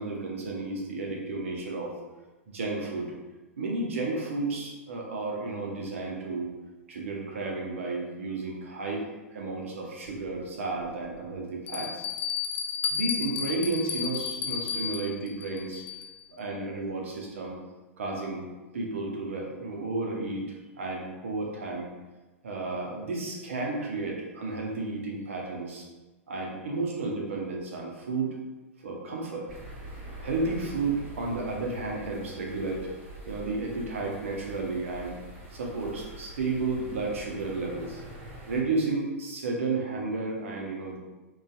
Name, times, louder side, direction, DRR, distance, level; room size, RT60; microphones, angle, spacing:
voice 1, 0.0-1.9 2.5-3.1 3.6-6.5 6.9-12.0 12.9-15.8 16.3-17.6 18.0-18.5 18.7-20.4 20.8-21.9 22.4-25.8 26.3-28.3 28.8-29.4 30.2-32.9 33.2-35.2 35.5-38.0 38.5-41.0, right 3 dB, 75° right, -1 dB, 0.6 m, -32 dB
Bell, 10.1-10.2 10.8-10.9 11.7-16.2, left 7 dB, 55° left, 0.4 m, -32 dB
sound 1, 29.5-38.6, right 1 dB, 35° right, 0.7 m, -45 dB
2.6 x 2.3 x 2.2 m, 1.2 s
hypercardioid pair, 105°, 7 cm